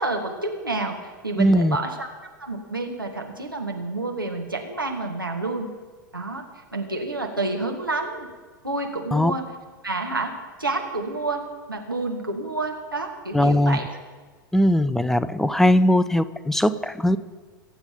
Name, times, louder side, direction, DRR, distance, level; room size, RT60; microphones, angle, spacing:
voice 1, 0.0-2.1 2.4-5.7 6.1-6.4 6.7-8.3 8.6-9.4 9.8-10.3 10.6-11.4 11.7-13.9, right 2 dB, 85° right, 1 dB, 2.0 m, -29 dB
voice 2, 1.4-1.8 9.1-9.3 13.3-13.8 14.5-17.2, left 1 dB, 5° left, 15 dB, 0.6 m, -19 dB
24.0 x 8.1 x 5.3 m, 1.4 s
figure-of-eight pair, 90°, 11 cm